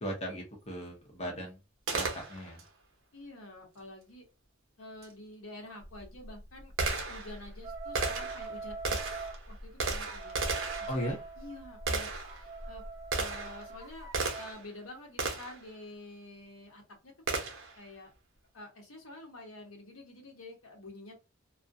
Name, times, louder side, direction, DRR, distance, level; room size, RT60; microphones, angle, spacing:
voice 1, 0.0-1.6 1.9-2.6 10.9-11.2, equal, 30° left, 0 dB, 0.7 m, -37 dB
Gunshot gunfire, 1.9-2.7 5.0-5.1 5.8-14.7 15.2-15.7 17.3-17.8, right 3 dB, 65° right, 0.7 m, -35 dB
voice 2, 3.1-4.2 4.8-10.4 10.8-12.8 13.1-14.1 14.4-17.4 17.8-18.1 18.5-21.2, left 2 dB, 80° left, 2 dB, 1.0 m, -48 dB
sound 1, 7.6-9.4 10.1-14.5, right 4 dB, 15° right, 0.3 m, -44 dB
2.4 x 2.1 x 2.5 m, 0.27 s
head